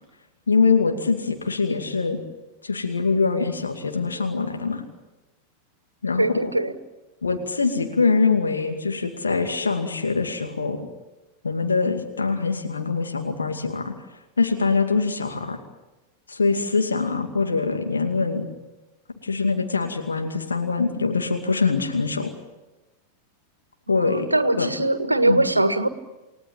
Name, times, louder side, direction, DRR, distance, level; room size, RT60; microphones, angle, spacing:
voice 1, 0.5-2.2 2.6-4.8 6.0-6.6 7.2-10.9 11.4-13.9 14.4-15.6 16.3-18.5 19.2-22.3 23.9-24.3 24.6-24.7 25.2-25.5, left 4 dB, 75° left, 4 dB, 2.5 m, -23 dB
voice 2, 6.2-6.7 23.9-25.9, right 2 dB, 85° right, 11 dB, 1.6 m, -21 dB
29.5 x 18.0 x 8.9 m, 1.1 s
figure-of-eight pair, 90°, 0 cm